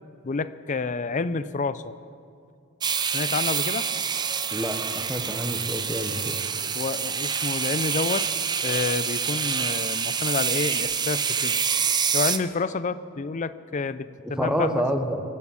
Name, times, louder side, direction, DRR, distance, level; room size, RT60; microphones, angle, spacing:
voice 1, 0.2-1.9 3.1-3.9 6.8-8.2 8.6-11.6 12.1-14.8, left 4 dB, 35° left, 14 dB, 0.5 m, -29 dB
sound 1, 2.8-12.4, right 6 dB, 20° right, 0.4 m, -27 dB
voice 2, 4.5-6.4 14.2-15.2, equal, 5° right, 5 dB, 0.9 m, -28 dB
23.5 x 8.5 x 7.1 m, 2.4 s
head